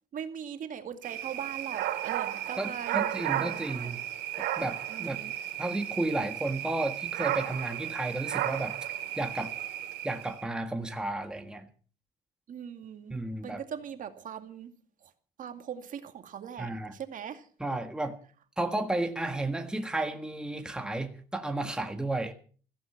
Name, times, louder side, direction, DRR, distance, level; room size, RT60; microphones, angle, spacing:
voice 1, 0.1-3.9 4.9-5.3 12.5-13.2 13.4-14.7 15.4-17.4, right 8 dB, 50° right, 7 dB, 2.2 m, -40 dB
sound 1, 1.0-10.5, right 12 dB, 85° right, 2.4 m, -34 dB
voice 2, 2.6-4.0 4.4-5.2 5.6-8.8 9.2-9.6 10.0-11.7 13.1-13.6 16.6-17.0 17.6-18.2 18.6-22.3, right 2 dB, 5° right, 5 dB, 1.7 m, -33 dB
15.5 x 15.0 x 6.0 m, 0.43 s
cardioid pair, 110°, 17 cm